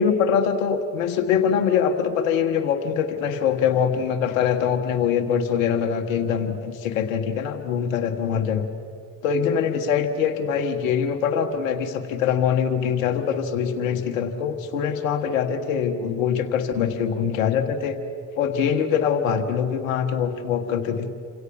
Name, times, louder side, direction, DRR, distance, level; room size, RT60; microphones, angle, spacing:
voice 1, 0.0-8.7 9.2-18.0 18.4-21.1, left 7 dB, 85° left, 6 dB, 1.6 m, -23 dB
29.0 x 26.0 x 7.2 m, 2.3 s
hypercardioid pair, 45°, 39 cm